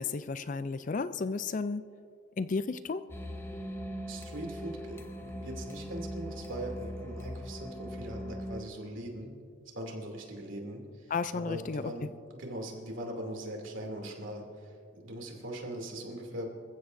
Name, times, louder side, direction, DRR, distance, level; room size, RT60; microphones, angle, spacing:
voice 1, 0.0-1.8 2.4-3.1 11.1-11.9, left 4 dB, 35° left, 13 dB, 0.4 m, -33 dB
sound 1, 3.1-8.6, equal, 10° left, 0.9 m, -40 dB
voice 2, 4.1-9.3 9.7-16.5, right 1 dB, 60° right, 1 dB, 2.7 m, -41 dB
26.5 x 15.0 x 2.6 m, 2.4 s
head